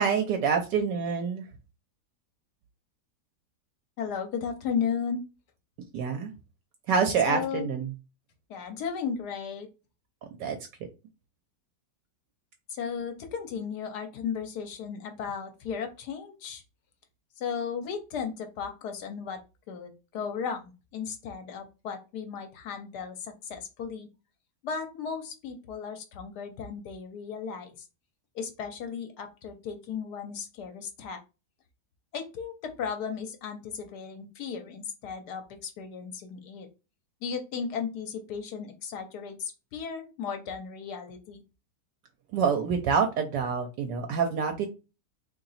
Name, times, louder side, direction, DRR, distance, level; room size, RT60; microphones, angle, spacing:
voice 1, 0.0-1.5 5.9-6.3 6.9-7.9 10.4-10.6 42.3-44.7, right 6 dB, 80° right, 4 dB, 1.2 m, -26 dB
voice 2, 4.0-5.2 7.3-7.7 8.5-9.7 12.7-16.6 17.4-19.4 19.7-24.1 24.6-27.7 28.3-31.2 32.1-36.7 37.2-41.4, left 6 dB, 70° left, 6 dB, 1.2 m, -35 dB
2.9 x 2.8 x 4.0 m, 0.29 s
omnidirectional pair, 1.9 m